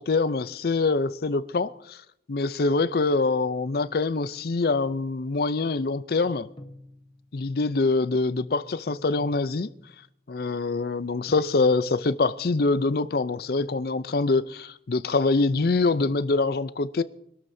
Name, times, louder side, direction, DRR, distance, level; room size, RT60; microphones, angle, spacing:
voice 1, 0.0-2.0 2.3-6.5 7.3-9.7 10.3-17.0, left 3 dB, 55° left, 0.5 m, -24 dB
sound 1, 6.2-7.5 8.9-10.1 11.3-12.2 13.6-14.6 16.0-16.3, left 1 dB, 30° left, 1.0 m, -47 dB
25.0 x 13.0 x 2.7 m
head